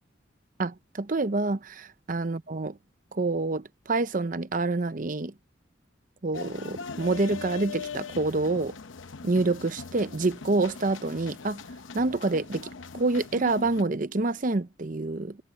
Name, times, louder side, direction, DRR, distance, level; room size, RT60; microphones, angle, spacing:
voice 1, 0.6-1.6 2.1-2.8 3.1-5.3 6.2-8.8 9.2-11.6 11.9-15.4, right 3 dB, 45° right, 0.7 m, -27 dB
sound 1, 6.3-13.8, left 4 dB, 85° left, 0.8 m, -40 dB
head